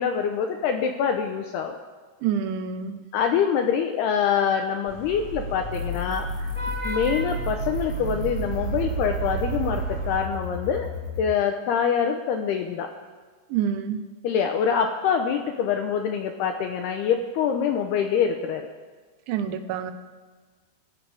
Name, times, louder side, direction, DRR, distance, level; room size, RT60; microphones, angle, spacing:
voice 1, 0.0-1.8 3.1-6.5 6.8-10.9 11.2-12.9 14.2-18.7, left 7 dB, 75° left, 4 dB, 2.7 m, -25 dB
voice 2, 2.2-3.0 13.5-14.0 19.3-19.9, right 8 dB, 85° right, 8 dB, 3.4 m, -27 dB
Vehicle horn car horn honking / Traffic noise roadway noise, 4.9-10.2, right 2 dB, ahead, 4.0 m, -33 dB
sound 1, 5.7-11.3, right 2 dB, 30° right, 2.1 m, -33 dB
26.0 x 15.0 x 3.5 m, 1.4 s
omnidirectional pair, 5.2 m